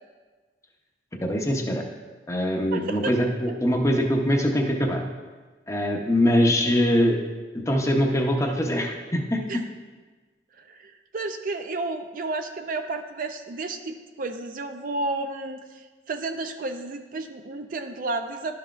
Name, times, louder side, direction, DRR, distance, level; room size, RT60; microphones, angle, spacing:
voice 1, 1.2-1.8 2.3-5.0 5.7-7.2 7.7-9.4, equal, 15° left, 1 dB, 0.7 m, -23 dB
voice 2, 2.7-3.1 9.5-9.6 10.6-18.6, right 3 dB, 50° right, 7 dB, 0.4 m, -32 dB
11.5 x 5.8 x 2.4 m, 1.3 s
head